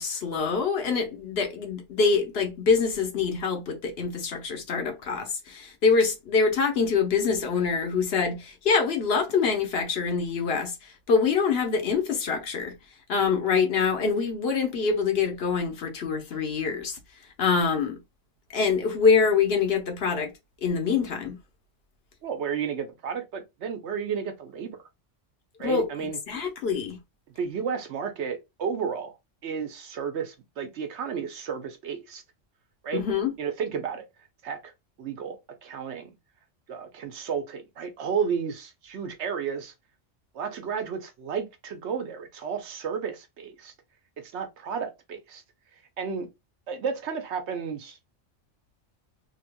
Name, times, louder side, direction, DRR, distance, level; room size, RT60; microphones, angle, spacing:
voice 1, 0.0-12.7 13.1-17.0 17.4-18.0 18.5-20.3 20.6-21.4 25.6-27.0 32.9-33.3, left 5 dB, 60° left, 1.0 m, -25 dB
voice 2, 22.2-24.8 25.6-26.2 27.4-29.1 29.4-32.2 32.8-33.0 33.4-34.0 34.4-34.7 35.0-35.4 35.6-36.1 36.7-39.7 40.3-43.7 44.2-45.4 46.0-46.3 46.7-48.0, right 6 dB, 65° right, 1.0 m, -32 dB
3.3 x 2.8 x 2.2 m
omnidirectional pair, 1.3 m